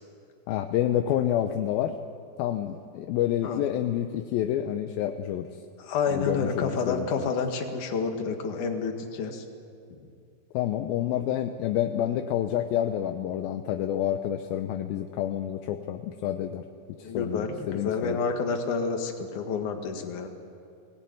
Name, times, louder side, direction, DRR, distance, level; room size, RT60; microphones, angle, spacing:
voice 1, 0.5-2.0 2.4-5.5 6.1-7.2 10.5-16.6 17.0-18.2, left 11 dB, 75° left, 6 dB, 2.3 m, -28 dB
voice 2, 5.8-9.4 17.0-20.3, left 5 dB, 55° left, 4 dB, 2.7 m, -29 dB
22.0 x 18.5 x 9.4 m, 2.5 s
omnidirectional pair, 4.9 m